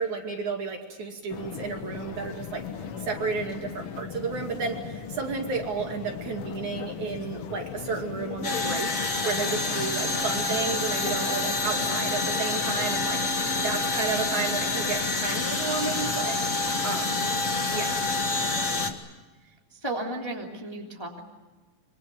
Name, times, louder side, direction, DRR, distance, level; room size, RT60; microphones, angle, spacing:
voice 1, 0.0-16.4 16.8-17.2 17.7-18.0, right 5 dB, 55° right, 2 dB, 3.6 m, -32 dB
sound 1, 1.3-19.0, left 8 dB, 70° left, 1.3 m, -38 dB
sound 2, 8.4-18.9, left 2 dB, 30° left, 1.6 m, -28 dB
voice 2, 19.4-21.3, right 2 dB, 10° left, 0 dB, 2.5 m, -35 dB
26.0 x 24.5 x 6.9 m, 1.3 s
omnidirectional pair, 4.3 m